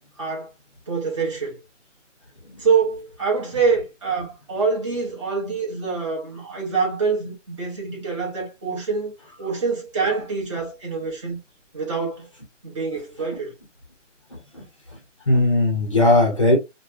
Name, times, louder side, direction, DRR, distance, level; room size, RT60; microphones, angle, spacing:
voice 1, 0.2-0.5 0.9-1.6 2.6-9.1 9.4-11.4 11.7-12.3 12.6-13.5, right 5 dB, 25° right, 1.1 m, -25 dB
voice 2, 14.3-14.6 15.3-16.6, left 2 dB, 25° left, 0.7 m, -18 dB
3.2 x 2.2 x 2.4 m
figure-of-eight pair, 165°, 38 cm